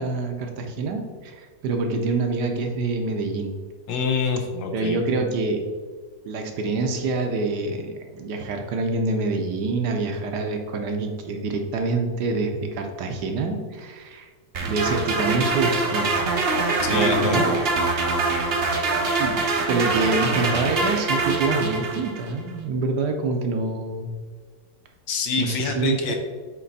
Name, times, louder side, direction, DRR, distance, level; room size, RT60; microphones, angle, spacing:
voice 1, 0.0-3.5 4.7-5.6 6.2-14.3 14.6-16.2 16.9-17.6 19.2-19.4 19.7-24.1 25.4-26.0, right 3 dB, 70° right, 4 dB, 1.2 m, -26 dB
voice 2, 3.9-5.0 16.8-17.4 25.1-26.1, left 5 dB, 80° left, 4 dB, 1.5 m, -26 dB
sound 1, 14.5-22.3, right 3 dB, 55° right, 0.7 m, -24 dB
7.6 x 3.1 x 4.0 m, 1.5 s
omnidirectional pair, 2.0 m